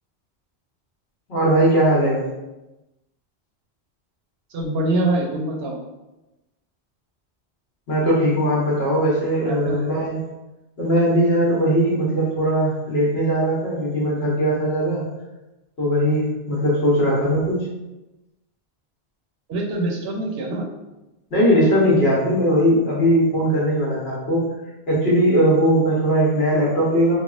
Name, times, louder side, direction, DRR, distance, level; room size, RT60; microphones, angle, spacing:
voice 1, 1.3-2.2 7.9-10.2 10.8-15.0 15.8-17.7 21.3-24.4 24.9-27.2, equal, 70° left, -5 dB, 1.2 m, -19 dB
voice 2, 4.5-5.8 9.4-9.9 19.5-20.7, right 2 dB, 70° right, 0 dB, 0.8 m, -24 dB
3.4 x 2.1 x 2.4 m, 1.0 s
omnidirectional pair, 1.1 m